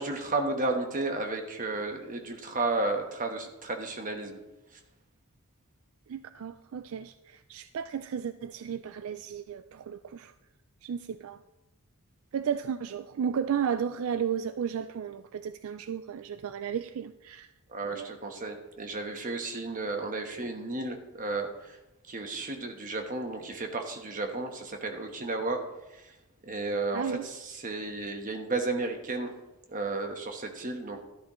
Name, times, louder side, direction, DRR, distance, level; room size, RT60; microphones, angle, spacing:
voice 1, 0.0-4.4 4.7-4.8 17.7-21.8 22.1-25.6 25.9-26.1 26.4-29.3 29.7-31.0, right 3 dB, 35° right, 4 dB, 1.2 m, -33 dB
voice 2, 6.1-10.3 10.8-11.4 12.3-17.5 17.8-18.1 26.9-27.3, right 7 dB, 65° right, 11 dB, 0.4 m, -34 dB
12.5 x 10.5 x 3.1 m, 1.0 s
head